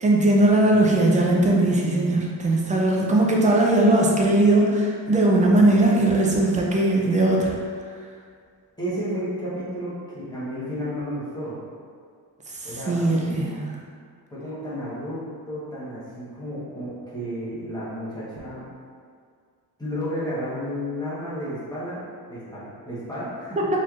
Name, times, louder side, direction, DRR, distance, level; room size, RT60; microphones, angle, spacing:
voice 1, 0.0-7.6 12.6-13.8 23.6-23.7, right 2 dB, 20° right, -2 dB, 0.4 m, -19 dB
voice 2, 5.4-5.8 8.8-11.6 12.6-13.2 14.3-18.6 19.8-23.6, equal, 10° left, -10 dB, 1.1 m, -32 dB
4.1 x 3.1 x 2.4 m, 2.1 s
cardioid pair, 140°, 40 cm